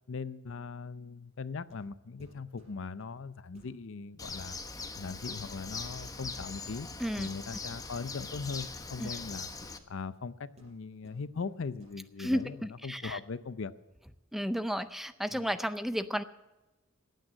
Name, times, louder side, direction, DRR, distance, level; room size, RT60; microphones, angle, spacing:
voice 1, 0.1-4.6 4.9-6.9 7.2-13.7 15.3-15.5, left 4 dB, 60° left, 15 dB, 0.6 m, -40 dB
sound 1, 1.7-1.9 2.2-3.2 3.5-3.8 4.2-5.0 5.7-5.9 6.2-6.8 7.2-8.5 9.6-9.8 10.6-11.5 11.8-12.0 12.3-12.5, equal, 30° right, 5.0 m, -58 dB
Bird, 4.2-9.8, left 4 dB, 15° left, 0.9 m, -41 dB
voice 2, 12.9-13.2 14.3-16.2, equal, ahead, 12 dB, 0.5 m, -32 dB
15.5 x 9.1 x 7.5 m, 1.1 s
head